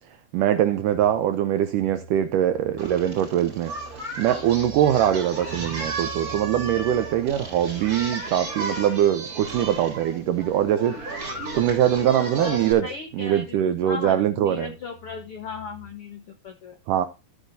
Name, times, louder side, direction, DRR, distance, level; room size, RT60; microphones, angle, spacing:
voice 1, 0.3-3.7 4.2-11.0 11.6-12.9 13.1-14.7 16.9-17.0, right 11 dB, 80° right, 1.9 m, -22 dB
sound 1, 0.9-16.0, right 4 dB, 25° left, 1.7 m, -48 dB
Singing, 2.8-12.7, right 3 dB, 25° right, 3.8 m, -34 dB
sound 2, 5.5-8.0, right 3 dB, 60° right, 3.3 m, -45 dB
voice 2, 12.1-16.8, left 5 dB, 80° left, 1.2 m, -37 dB
13.5 x 8.1 x 2.7 m
omnidirectional pair, 4.5 m